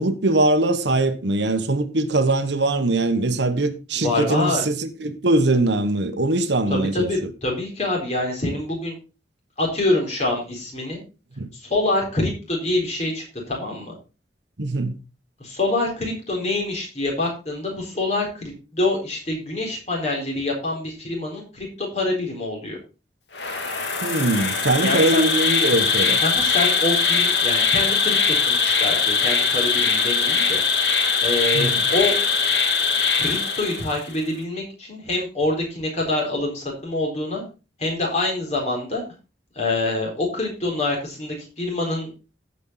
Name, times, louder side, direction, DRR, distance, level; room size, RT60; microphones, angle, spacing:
voice 1, 0.0-7.3 11.4-11.5 14.6-14.9 24.0-26.2 31.5-31.8, right 2 dB, 70° right, 1.1 m, -21 dB
voice 2, 4.0-4.6 6.7-9.0 9.6-11.0 11.5-13.9 15.4-22.8 24.8-25.2 26.2-30.6 31.2-32.2 33.2-37.4 37.8-39.0 39.6-42.1, left 2 dB, 35° left, 4.1 m, -25 dB
Insect, 23.3-34.1, left 5 dB, 65° left, 2.3 m, -21 dB
16.0 x 5.5 x 3.9 m
head